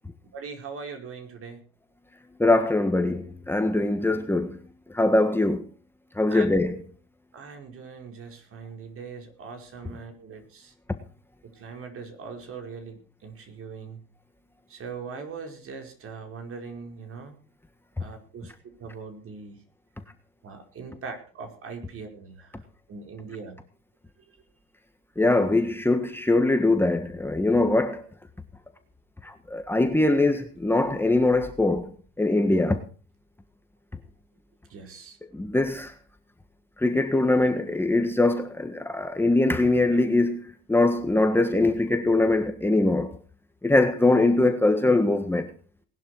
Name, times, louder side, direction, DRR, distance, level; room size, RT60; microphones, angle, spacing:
voice 1, 0.3-1.6 6.3-6.5 7.3-10.7 11.4-14.0 14.7-17.3 18.0-19.6 20.4-22.5 22.9-23.6 34.7-35.2, right 5 dB, 45° right, 5.1 m, -40 dB
voice 2, 2.4-4.6 4.9-5.6 6.2-6.8 25.2-28.0 29.2-31.9 32.2-32.8 35.3-35.9 36.8-40.4 40.7-43.2 43.6-45.5, left 2 dB, 5° left, 1.5 m, -22 dB
19.5 x 11.5 x 4.7 m
supercardioid pair, 105°, 30 cm